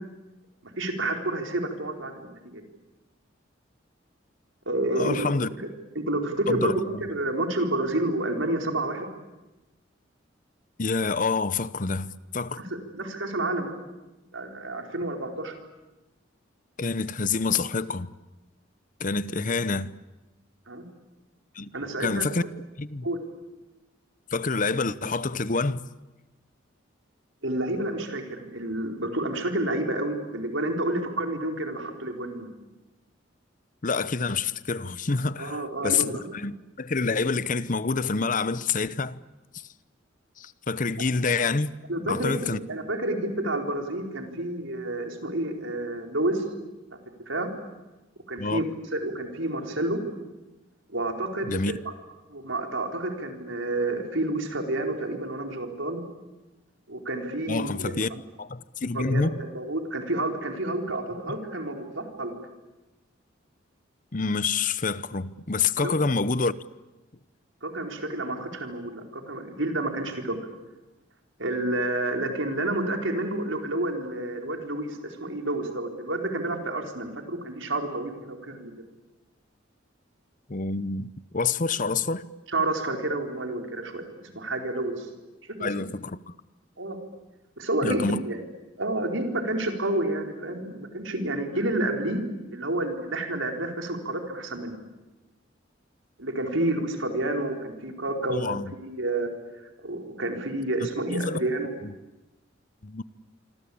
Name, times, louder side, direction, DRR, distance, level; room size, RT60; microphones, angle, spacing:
voice 1, 0.6-2.6 4.7-5.3 5.6-5.7 5.9-6.7 7.0-9.1 12.9-13.7 14.3-15.5 20.7-20.8 21.7-22.2 23.0-23.2 27.4-32.5 35.4-36.3 41.9-46.4 47.3-47.5 48.3-48.6 48.9-50.0 50.9-51.9 52.3-56.0 56.9-58.0 58.9-62.3 65.8-65.9 67.6-70.4 71.4-78.7 82.5-85.1 85.6-85.7 86.8-87.0 87.6-88.4 88.8-94.8 96.2-99.3 99.8-101.7, right 1 dB, 85° right, 4.5 m, -29 dB
voice 2, 5.0-5.5 6.5-7.0 10.8-12.6 16.8-18.1 19.0-19.9 21.5-21.7 22.0-22.4 22.8-23.1 24.3-25.9 33.8-39.2 40.4-41.7 42.0-42.6 48.4-48.6 51.5-51.7 57.5-58.1 58.4-59.4 61.3-61.4 64.1-66.5 80.5-81.1 81.3-82.2 85.6-86.3 87.8-88.2 98.3-98.7 100.8-101.4 101.8-101.9 102.8-103.0, left 4 dB, 45° left, 0.8 m, -27 dB
26.0 x 26.0 x 8.7 m
head